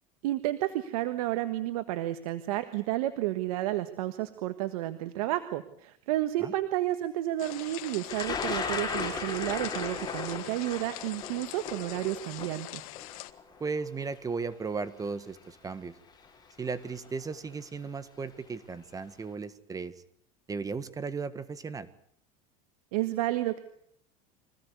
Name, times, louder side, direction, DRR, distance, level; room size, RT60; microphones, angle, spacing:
voice 1, 0.2-12.8 22.9-23.6, right 15 dB, 85° right, 10 dB, 1.5 m, -31 dB
sound 1, 7.4-13.3, left 18 dB, 80° left, 1.5 m, -43 dB
Thunder, 8.1-14.1 15.0-15.1 16.2-16.5 16.8-17.3, left 5 dB, 25° left, 6.8 m, -36 dB
voice 2, 13.6-15.9 16.6-19.9 20.5-21.9, right 4 dB, 20° right, 13 dB, 1.6 m, -36 dB
25.0 x 17.0 x 8.2 m, 0.68 s
supercardioid pair, 125°, 18 cm